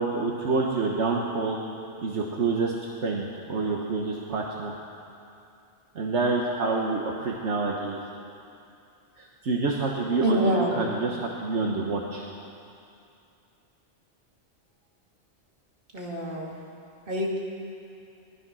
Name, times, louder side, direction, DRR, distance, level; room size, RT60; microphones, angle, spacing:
voice 1, 0.0-1.6 2.0-2.7 3.0-4.7 5.9-8.1 9.2-12.3, right 3 dB, 75° right, -1 dB, 1.5 m, -27 dB
voice 2, 10.2-10.8 15.9-16.5 17.1-17.4, right 1 dB, 50° right, -4 dB, 2.7 m, -26 dB
18.5 x 12.5 x 6.2 m, 2.6 s
omnidirectional pair, 1.2 m